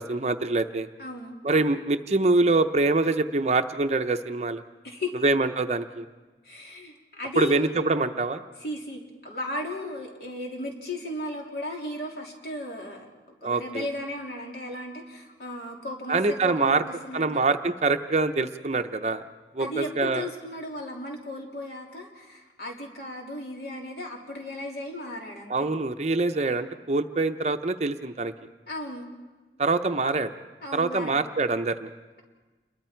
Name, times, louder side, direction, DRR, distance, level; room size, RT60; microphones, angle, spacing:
voice 1, 0.0-0.9 1.4-4.6 5.2-6.0 7.4-8.4 13.4-13.8 16.1-16.8 17.1-19.2 19.5-20.2 25.5-28.3 29.6-30.3 30.7-31.9, right 3 dB, 35° right, 8 dB, 0.7 m, -24 dB
voice 2, 1.0-1.4 4.8-5.1 6.4-7.7 8.6-13.1 13.4-17.3 19.6-25.7 28.7-29.1 30.6-31.3, left 1 dB, 60° left, -1 dB, 3.3 m, -36 dB
28.5 x 22.0 x 4.5 m, 1.3 s
head